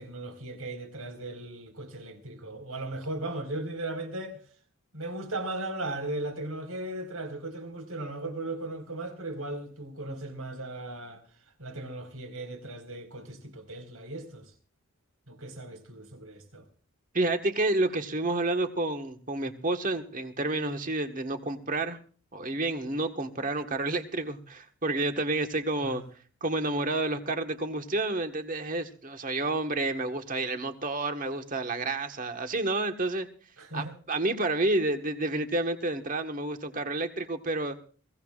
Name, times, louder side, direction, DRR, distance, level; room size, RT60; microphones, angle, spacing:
voice 1, 0.0-4.4 4.9-11.2 11.6-14.5 15.3-16.6 25.8-26.0 33.6-34.0, right 2 dB, 75° right, 4.8 m, -37 dB
voice 2, 17.1-22.0 22.3-26.0 26.4-33.3 33.7-37.8, right 2 dB, 35° right, 1.4 m, -30 dB
22.5 x 16.5 x 2.5 m
head